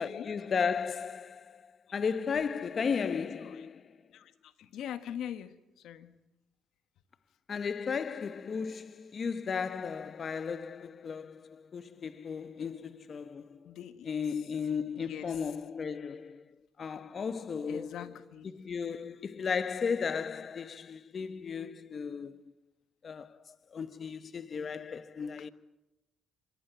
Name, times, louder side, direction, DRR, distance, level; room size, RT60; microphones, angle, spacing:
voice 1, 0.0-3.9 7.5-13.7 14.0-16.4 16.8-18.1 18.4-22.4 23.0-23.4 23.7-25.5, left 6 dB, 45° left, 0.9 m, -35 dB
voice 2, 4.1-5.6 5.8-6.1 13.6-14.2 15.0-15.3 17.7-18.5, left 10 dB, 80° left, 1.4 m, -42 dB
25.5 x 13.5 x 8.9 m
cardioid pair, 90°, 0 cm